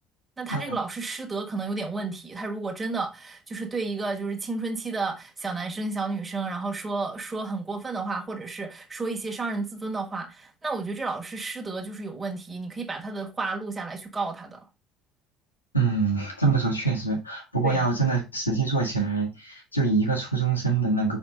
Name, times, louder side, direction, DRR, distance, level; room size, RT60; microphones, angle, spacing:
voice 1, 0.4-14.6 17.6-17.9, right 3 dB, 20° right, 1.6 m, -32 dB
voice 2, 15.7-21.2, right 4 dB, 90° left, 1.7 m, -25 dB
5.7 x 4.4 x 3.8 m
figure-of-eight pair, 60°, 0 cm